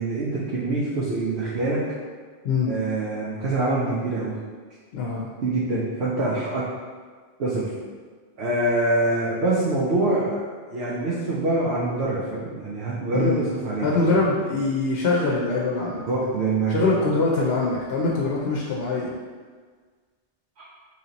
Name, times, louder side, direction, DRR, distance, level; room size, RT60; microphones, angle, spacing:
voice 1, 0.0-1.8 2.7-4.3 5.4-6.7 7.4-7.7 8.4-14.1 16.1-16.7 20.6-20.7, right 2 dB, 90° right, -6 dB, 0.9 m, -25 dB
voice 2, 4.9-5.3 13.1-13.4 13.8-16.1 16.7-19.1, left 3 dB, 70° left, -3 dB, 0.8 m, -23 dB
3.1 x 2.9 x 3.8 m, 1.5 s
omnidirectional pair, 1.1 m